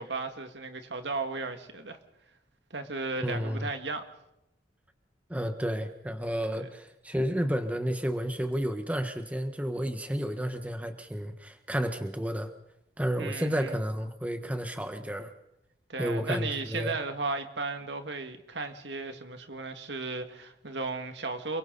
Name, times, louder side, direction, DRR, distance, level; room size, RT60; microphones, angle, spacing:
voice 1, 0.0-2.0 2.7-4.1 6.6-6.7 13.2-13.7 15.9-21.6, right 3 dB, 75° right, 6 dB, 2.3 m, -35 dB
voice 2, 3.2-3.7 5.3-12.5 13.0-15.3 16.0-17.0, equal, 10° right, 7 dB, 1.3 m, -31 dB
29.5 x 23.0 x 4.1 m, 0.87 s
head